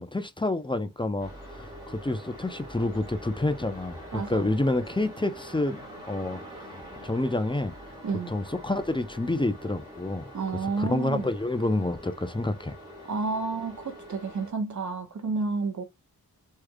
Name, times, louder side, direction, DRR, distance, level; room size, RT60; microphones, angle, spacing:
voice 1, 0.0-5.8 6.1-6.4 7.0-7.7 8.3-10.3 10.8-12.8, left 2 dB, 15° left, 0.5 m, -28 dB
sound 1, 1.2-14.5, equal, 10° right, 1.6 m, -45 dB
voice 2, 4.1-4.5 8.0-8.3 10.3-11.3 13.1-15.8, right 4 dB, 50° right, 1.2 m, -30 dB
3.3 x 3.2 x 2.2 m
cardioid pair, 65°, 36 cm